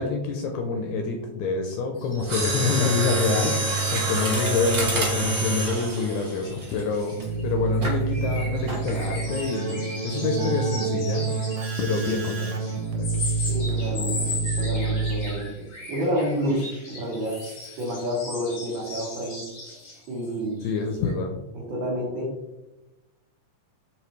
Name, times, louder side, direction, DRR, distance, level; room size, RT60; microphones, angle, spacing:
voice 1, 0.0-7.2 7.4-11.3 11.8-12.6 12.9-13.3 20.6-21.4, left 4 dB, 80° left, 2 dB, 1.6 m, -27 dB
sound 1, 2.0-7.4 7.7-20.3 20.6-20.8 21.0-21.1, left 2 dB, 65° left, 0.8 m, -38 dB
Mechanisms, 2.2-7.2 7.8-8.0 8.7-9.0 9.3-9.4, right 2 dB, 40° right, 1.1 m, -27 dB
Keyboard (musical), 7.2-15.5, right 4 dB, 75° right, 1.8 m, -28 dB
voice 2, 13.5-14.3 14.6-15.5 15.9-16.6 16.9-17.4 17.8-19.5 20.1-20.6 21.5-22.3, equal, 90° right, -5 dB, 1.0 m, -29 dB
5.1 x 2.9 x 3.1 m, 1.0 s
omnidirectional pair, 3.6 m